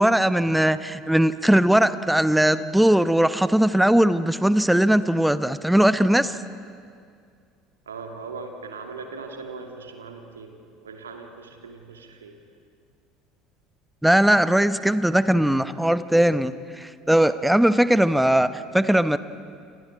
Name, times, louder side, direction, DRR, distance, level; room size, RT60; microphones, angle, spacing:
voice 1, 0.0-6.4 14.0-19.2, right 1 dB, 5° right, 13 dB, 0.9 m, -19 dB
voice 2, 7.9-12.4, right 4 dB, 75° right, 4 dB, 2.4 m, -39 dB
28.0 x 27.5 x 4.8 m, 2.2 s
figure-of-eight pair, 65°, 0 cm